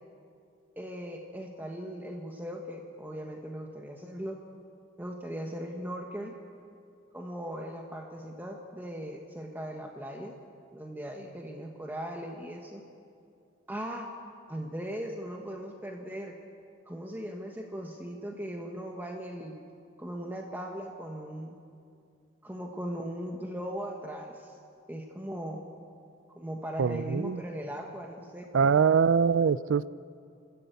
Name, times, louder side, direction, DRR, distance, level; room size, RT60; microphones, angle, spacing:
voice 1, 0.8-4.4 5.0-6.4 7.1-10.3 10.7-12.8 13.7-14.1 14.5-16.4 16.9-19.6 20.0-21.6 22.4-24.6 24.9-25.7 26.3-28.8, equal, 10° right, 1 dB, 1.4 m, -38 dB
voice 2, 26.8-27.4 28.5-29.9, right 6 dB, 85° right, 17 dB, 0.4 m, -23 dB
30.0 x 14.0 x 8.2 m, 2.4 s
head